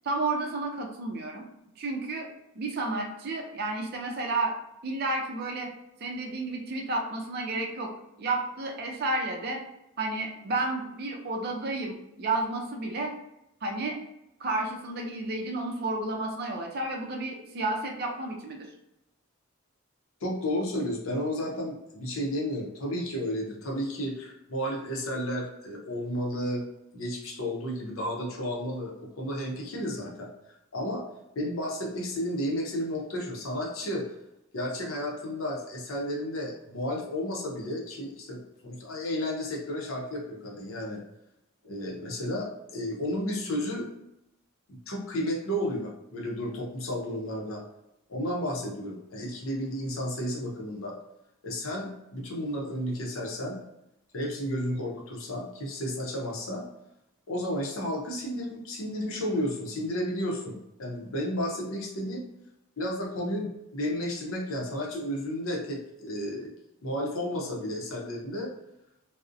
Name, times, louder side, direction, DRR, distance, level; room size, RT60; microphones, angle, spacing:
voice 1, 0.0-1.4 1.8-2.3 2.5-4.5 4.8-5.7 6.0-7.9 8.2-9.6 10.0-13.1 13.6-14.0 14.4-18.7, right 2 dB, 45° right, 2 dB, 0.4 m, -31 dB
voice 2, 20.2-26.7 26.9-30.3 30.7-31.0 31.4-34.1 34.5-41.0 41.6-43.9 44.7-47.6 48.1-51.0 51.4-53.6 54.1-56.6 57.3-62.2 62.8-66.5 66.8-68.5, equal, 70° left, -1 dB, 0.6 m, -32 dB
2.5 x 2.0 x 2.5 m, 0.86 s
head